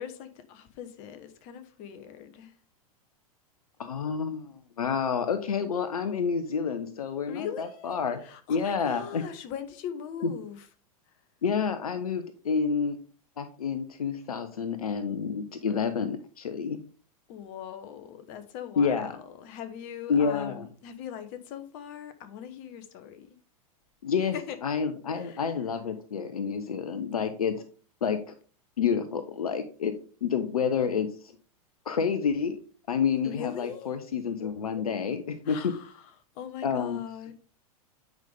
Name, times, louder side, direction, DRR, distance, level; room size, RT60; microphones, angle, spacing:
voice 1, 0.0-2.5 7.3-10.7 11.1-11.2 17.3-23.4 24.3-24.6 25.1-25.6 33.2-33.9 35.4-37.3, left 8 dB, 45° left, 1.2 m, -41 dB
voice 2, 3.8-8.2 8.5-9.2 10.2-10.3 11.4-13.0 13.4-16.8 18.8-19.1 20.1-20.7 24.0-24.3 24.6-27.6 28.0-28.2 28.8-29.9 30.2-31.1 31.9-32.6 32.9-35.6 36.6-37.0, left 6 dB, 75° left, 0.8 m, -29 dB
9.1 x 5.2 x 3.5 m
figure-of-eight pair, 95°, 19 cm